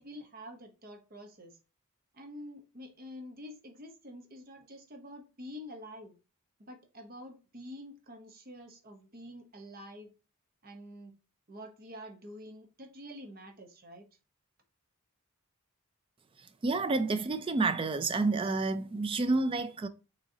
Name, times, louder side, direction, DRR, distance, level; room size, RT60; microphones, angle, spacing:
voice 1, 0.0-1.6 2.1-6.2 6.6-10.1 10.6-11.1 11.5-14.1, equal, 40° right, 0.9 m, -47 dB
voice 2, 16.6-19.9, right 3 dB, 25° right, 0.3 m, -29 dB
6.4 x 3.0 x 2.7 m
head